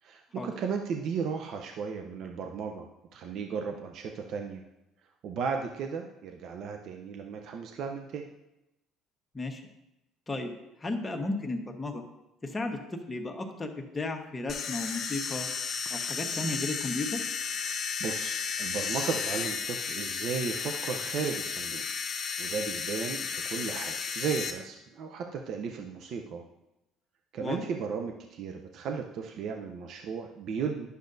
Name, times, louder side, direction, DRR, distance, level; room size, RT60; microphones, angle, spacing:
voice 1, 0.0-4.6 5.2-8.3 17.6-21.8 22.4-26.4 27.3-30.9, right 6 dB, 60° right, 4 dB, 0.6 m, -35 dB
voice 2, 10.8-12.0 12.4-15.5 15.9-17.2 27.4-27.7, left 2 dB, 20° left, 3 dB, 1.1 m, -34 dB
sound 1, 14.5-24.5, left 6 dB, 50° left, 1.0 m, -33 dB
10.5 x 6.5 x 2.6 m, 0.93 s
supercardioid pair, 90°, 0 cm